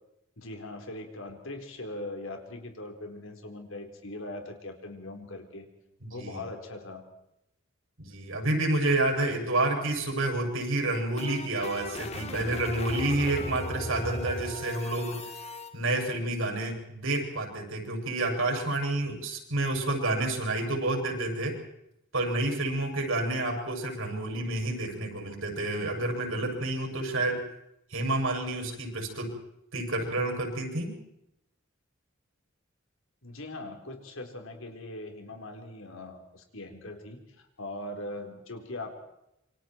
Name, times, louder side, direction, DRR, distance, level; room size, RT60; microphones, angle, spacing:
voice 1, 0.4-5.7 6.1-7.0 33.2-38.9, left 2 dB, 85° left, 4 dB, 4.1 m, -40 dB
voice 2, 6.0-6.4 8.0-15.3 15.7-21.6 22.1-27.4 27.9-29.3 29.7-31.0, right 2 dB, 80° right, 2 dB, 7.1 m, -29 dB
sound 1, 10.7-15.7, left 1 dB, 30° left, 1.8 m, -37 dB
27.5 x 25.5 x 4.6 m, 0.82 s
head